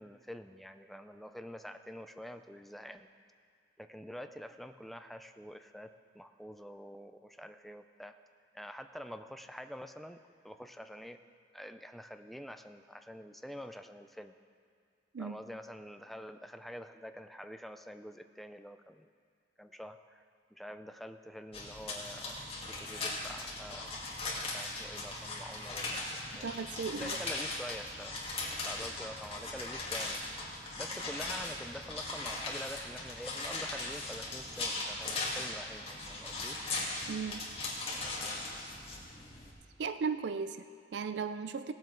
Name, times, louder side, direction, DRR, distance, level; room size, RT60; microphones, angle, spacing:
voice 1, 0.0-3.1 3.8-8.1 8.5-11.2 11.5-14.3 15.2-19.1 19.6-20.2 20.5-22.4 22.8-24.0 24.4-26.5 27.0-28.2 28.6-30.2 30.8-36.6, equal, ahead, 8 dB, 0.4 m, -47 dB
sound 1, 21.5-39.5, left 2 dB, 35° left, 2.1 m, -39 dB
voice 2, 26.4-27.2 37.1-37.5 39.8-41.7, right 5 dB, 80° right, 11 dB, 0.4 m, -36 dB
17.5 x 7.6 x 4.6 m, 2.2 s
head